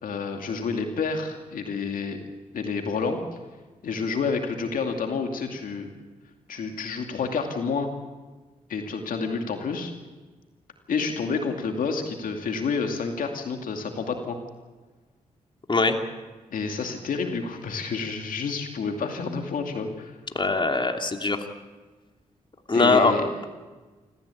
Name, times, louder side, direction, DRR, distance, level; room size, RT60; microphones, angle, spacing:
voice 1, 0.0-2.2 2.5-3.2 3.8-5.9 6.5-7.9 8.7-9.9 10.9-14.4 16.5-20.2 22.7-23.3, left 5 dB, 80° left, 4 dB, 2.5 m, -29 dB
voice 2, 20.3-21.4 22.7-23.1, left 3 dB, 35° left, 4 dB, 2.7 m, -21 dB
27.0 x 15.0 x 8.5 m, 1.3 s
cardioid pair, 50°, 14 cm